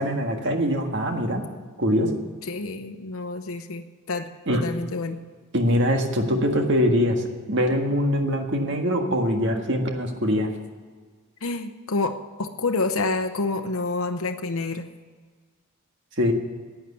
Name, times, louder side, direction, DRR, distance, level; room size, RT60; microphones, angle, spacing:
voice 1, 0.0-1.4 1.8-2.2 4.5-4.6 5.5-10.5 16.2-16.3, equal, 55° right, 4 dB, 1.7 m, -23 dB
voice 2, 2.5-5.2 11.4-14.9, left 3 dB, 70° left, 5 dB, 0.8 m, -28 dB
11.5 x 9.1 x 8.4 m, 1.5 s
head